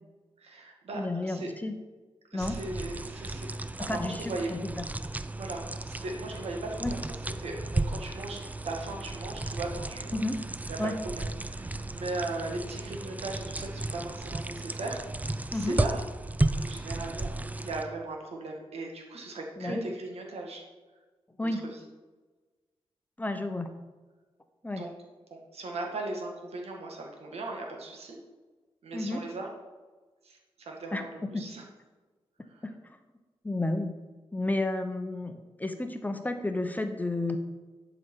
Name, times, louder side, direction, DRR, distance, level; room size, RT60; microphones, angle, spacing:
voice 1, 0.4-1.5 2.3-3.5 3.9-4.5 5.4-10.2 10.7-16.0 16.6-17.3 17.6-20.6 21.5-21.8 24.8-24.9 25.3-28.2 28.8-29.5 30.2-31.6 32.4-32.6, right 2 dB, 75° right, 1 dB, 1.7 m, -38 dB
voice 2, 0.9-1.7 2.3-2.6 3.8-4.8 6.8-6.9 10.1-10.4 10.8-11.0 15.5-15.8 19.6-19.8 21.4-21.6 23.2-23.7 24.6-24.9 28.9-29.2 30.9-31.0 31.3-31.5 32.6-32.7 33.4-34.0 34.3-37.4, left 2 dB, 15° left, 7 dB, 0.9 m, -31 dB
sound 1, 2.4-17.8, right 2 dB, 15° right, 0.4 m, -34 dB
10.5 x 5.2 x 4.6 m, 1.3 s
cardioid pair, 65°, 11 cm